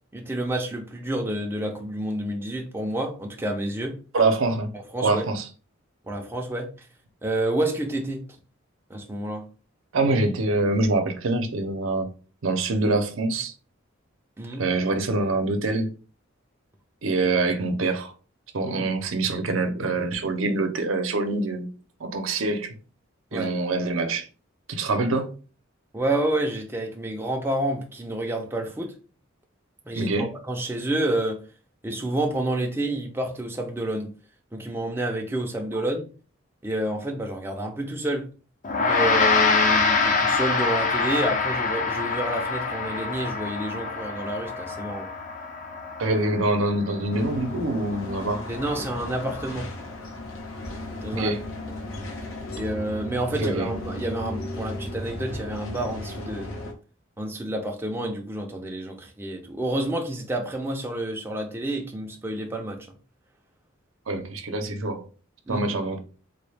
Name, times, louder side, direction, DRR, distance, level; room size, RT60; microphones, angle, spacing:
voice 1, 0.1-4.0 4.9-5.2 6.1-6.7 7.2-8.3 8.9-9.4 14.4-14.6 18.6-18.7 23.3-23.5 25.9-28.9 29.9-31.4 31.8-34.1 34.5-36.1 36.6-38.3 38.8-45.1 48.5-49.7 51.0-51.3 52.5-56.5 57.2-62.8 65.5-65.6, right 1 dB, 10° right, 0.5 m, -29 dB
voice 2, 4.1-4.7 5.0-5.5 9.9-12.1 12.4-13.5 14.6-15.9 17.0-18.1 18.5-21.7 22.0-22.7 23.3-24.3 24.7-25.3 29.9-30.3 46.0-48.5 51.1-51.4 53.4-53.7 64.1-65.0 65.5-66.0, right 2 dB, 80° right, 0.6 m, -25 dB
Gong, 38.6-48.2, left 4 dB, 40° left, 0.5 m, -25 dB
sound 1, 47.1-56.7, left 1 dB, 85° left, 0.8 m, -35 dB
3.8 x 2.3 x 3.3 m
head